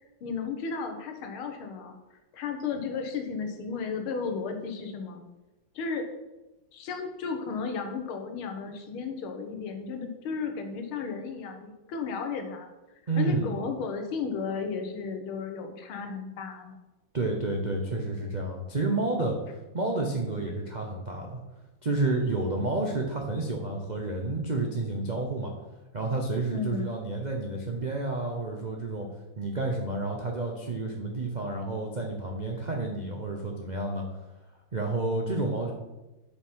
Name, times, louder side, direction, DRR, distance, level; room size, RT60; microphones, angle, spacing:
voice 1, 0.2-2.0 2.3-5.2 5.8-6.1 6.7-12.7 13.2-16.8 26.5-26.9, left 5 dB, 85° left, 5 dB, 1.9 m, -34 dB
voice 2, 13.1-13.5 17.1-19.4 19.7-21.4 21.8-25.5 25.9-29.1 29.4-34.0 34.7-35.7, right 2 dB, 85° right, 1 dB, 0.4 m, -30 dB
7.0 x 5.4 x 5.5 m, 1.0 s
omnidirectional pair, 2.3 m